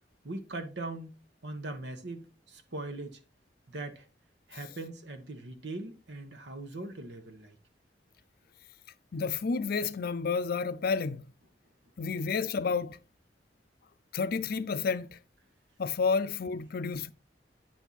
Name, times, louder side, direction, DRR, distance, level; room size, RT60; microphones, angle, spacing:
voice 1, 0.2-1.2 1.4-3.2 3.7-4.0 4.5-7.6, right 2 dB, 75° right, 1.3 m, -40 dB
voice 2, 9.1-11.2 12.0-13.0 14.1-15.2 15.8-17.1, left 5 dB, 60° left, 0.5 m, -30 dB
9.0 x 4.4 x 4.0 m
head